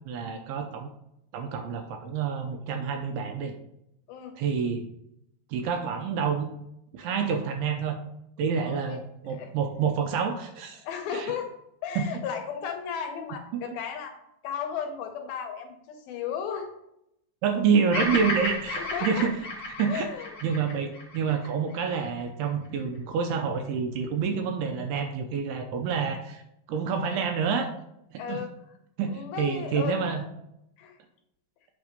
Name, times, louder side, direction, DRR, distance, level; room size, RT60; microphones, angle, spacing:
voice 1, 0.1-0.9 1.3-3.5 4.4-4.8 5.5-6.5 6.9-8.0 8.4-10.8 11.1-11.3 12.0-12.1 17.4-19.3 19.8-20.1 20.4-26.4 26.7-27.7 28.1-28.4 29.0-30.2, right 6 dB, 80° right, 5 dB, 2.4 m, -28 dB
voice 2, 8.6-9.0 9.3-9.5 10.8-11.5 11.8-14.1 14.4-16.7 18.8-19.3 19.9-20.4 28.2-28.5 29.1-30.1 30.8-31.0, left 7 dB, 75° left, 4 dB, 2.3 m, -34 dB
Bird vocalization bird call bird song, 17.9-22.2, left 2 dB, 40° left, 2.7 m, -33 dB
8.5 x 3.5 x 6.6 m, 0.80 s
omnidirectional pair, 5.0 m